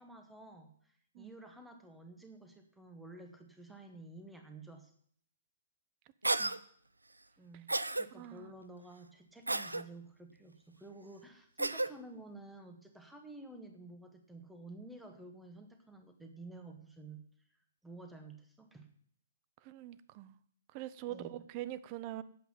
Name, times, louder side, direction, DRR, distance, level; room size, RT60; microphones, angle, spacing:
voice 1, 0.0-4.9 7.4-17.2 17.8-18.9 21.1-21.4, right 2 dB, 5° right, 1.7 m, -51 dB
Cough, 6.2-6.6 7.7-8.1 9.5-9.8 11.6-11.9, right 2 dB, 85° right, 0.5 m, -32 dB
voice 2, 6.3-6.6 8.1-8.5 19.6-20.3 20.7-22.2, right 13 dB, 35° right, 0.7 m, -44 dB
8.6 x 7.9 x 8.9 m
figure-of-eight pair, 120°, 0 cm